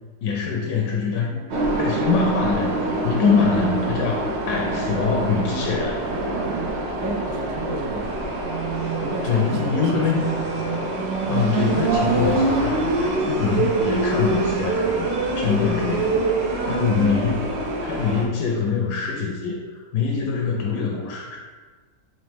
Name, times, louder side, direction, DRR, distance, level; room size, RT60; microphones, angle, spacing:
voice 1, 0.2-2.8 3.0-6.1 9.2-10.3 11.3-16.1 16.6-17.5 17.8-21.5, left 5 dB, 75° left, -1 dB, 1.1 m, -24 dB
sound 1, 1.5-18.3, right 2 dB, 90° right, 0.5 m, -25 dB
voice 2, 7.0-8.2 9.0-10.1, right 2 dB, 70° right, 1 dB, 1.0 m, -31 dB
Motor vehicle (road), 10.5-18.1, equal, 35° left, 0.6 m, -39 dB
4.0 x 3.2 x 3.4 m, 1.4 s
omnidirectional pair, 1.8 m